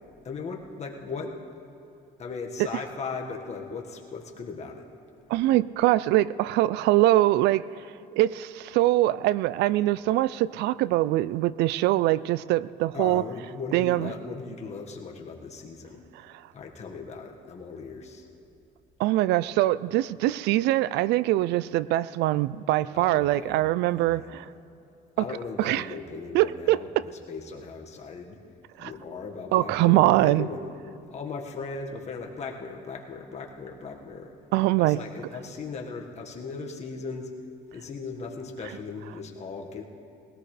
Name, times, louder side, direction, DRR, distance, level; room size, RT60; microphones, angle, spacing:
voice 1, 0.2-1.3 2.2-4.9 12.9-16.0 16.5-18.3 22.9-23.6 23.9-24.3 25.2-28.4 28.8-30.6 31.1-34.3 34.8-37.3 37.7-39.8, left 4 dB, 40° left, 1 dB, 1.7 m, -38 dB
voice 2, 5.3-7.6 8.1-13.2 13.7-14.1 19.0-24.5 25.2-25.3 25.6-25.9 26.3-27.0 28.8-28.9 29.5-30.5 34.5-35.0, right 16 dB, 85° right, 19 dB, 0.4 m, -23 dB
20.0 x 17.0 x 3.3 m, 2.7 s
cardioid pair, 110°, 17 cm